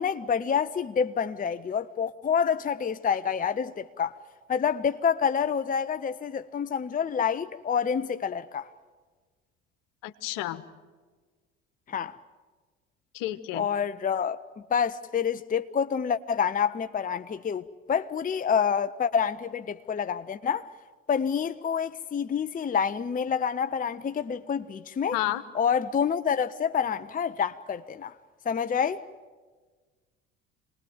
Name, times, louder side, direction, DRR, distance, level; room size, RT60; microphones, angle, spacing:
voice 1, 0.0-4.1 4.5-8.7 11.9-12.2 13.5-14.4 14.7-20.7 21.1-25.2 25.5-28.1 28.4-29.0, left 7 dB, 20° left, 0.8 m, -27 dB
voice 2, 10.0-10.6 13.1-13.7 25.1-25.4, left 15 dB, 60° left, 1.5 m, -31 dB
27.0 x 20.0 x 9.3 m
figure-of-eight pair, 60°, 38 cm